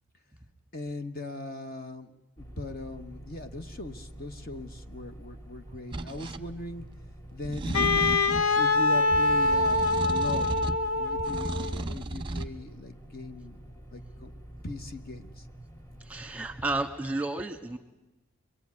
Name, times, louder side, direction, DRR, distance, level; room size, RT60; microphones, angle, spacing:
voice 1, 0.7-6.9 7.3-10.6 10.9-13.6 13.9-14.3 14.6-15.5, left 2 dB, 40° left, 7 dB, 1.2 m, -39 dB
sound 1, 2.4-16.8, right 1 dB, 15° left, 2.0 m, -47 dB
sound 2, 5.9-6.4 7.4-8.5 9.1-10.9 11.2-12.5, right 2 dB, 20° right, 0.9 m, -34 dB
Wind instrument woodwind instrument, 7.7-11.8, left 2 dB, 80° left, 0.9 m, -25 dB
voice 2, 16.0-17.8, right 2 dB, 5° right, 7 dB, 1.7 m, -32 dB
25.0 x 22.5 x 9.6 m, 0.97 s
head